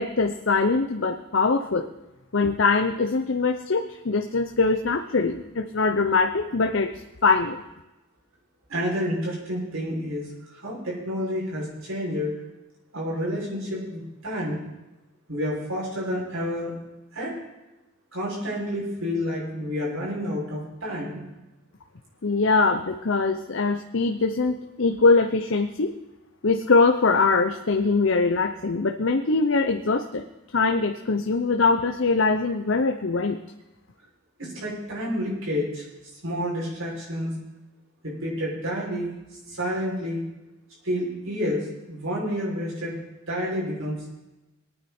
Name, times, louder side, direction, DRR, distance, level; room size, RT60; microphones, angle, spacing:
voice 1, 0.0-1.9 2.3-6.9 7.2-7.6 22.2-25.9 26.4-30.2 30.5-33.4, left 3 dB, 60° left, 5 dB, 0.7 m, -22 dB
voice 2, 8.7-12.3 12.9-14.6 15.3-16.7 17.1-17.3 18.1-21.2 34.4-35.8 36.2-37.3 38.0-39.1 39.4-40.2 40.8-43.0 43.3-44.0, equal, 70° right, -5 dB, 6.5 m, -29 dB
21.5 x 9.4 x 4.4 m, 1.0 s
head